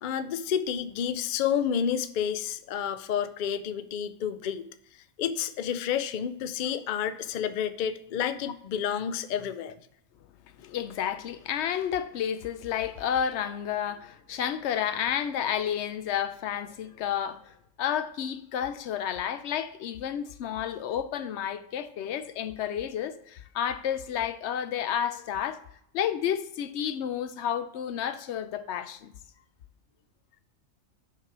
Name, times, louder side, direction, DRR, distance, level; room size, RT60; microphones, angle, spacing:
voice 1, 0.0-4.7 5.2-9.7, left 8 dB, 90° left, 0.4 m, -30 dB
voice 2, 10.6-17.5 17.8-25.6 25.9-29.1, left 9 dB, 65° left, 0.8 m, -31 dB
5.9 x 4.6 x 5.9 m
omnidirectional pair, 1.4 m